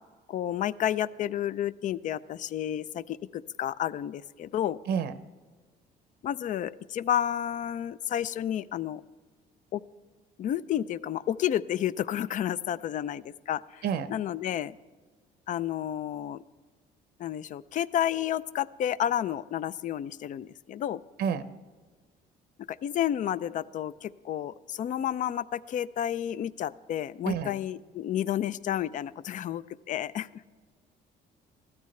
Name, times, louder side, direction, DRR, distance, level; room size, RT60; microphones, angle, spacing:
voice 1, 0.3-4.8 6.2-9.0 9.7-9.8 10.4-13.8 14.1-14.8 15.5-16.4 17.2-21.0 22.7-30.3, left 11 dB, 50° left, 18 dB, 0.4 m, -31 dB
voice 2, 4.9-5.1 13.8-14.1 21.2-21.5 27.2-27.5, right 7 dB, 70° right, 12 dB, 0.7 m, -29 dB
15.5 x 13.0 x 3.2 m, 1.5 s
cardioid pair, 110°, 17 cm